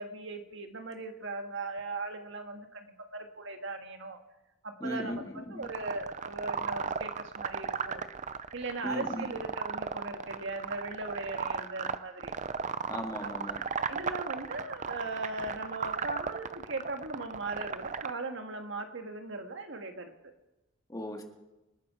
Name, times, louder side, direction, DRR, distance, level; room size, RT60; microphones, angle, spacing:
voice 1, 0.0-4.2 4.6-8.0 8.5-12.4 13.2-13.3 13.8-20.3, right 2 dB, 65° right, 5 dB, 1.7 m, -39 dB
voice 2, 4.8-5.7 8.8-9.3 12.9-13.6 20.9-21.2, equal, 20° left, 3 dB, 1.8 m, -37 dB
sound 1, 5.6-18.1, right 6 dB, 35° right, 0.5 m, -36 dB
26.5 x 9.5 x 4.4 m, 1.0 s
head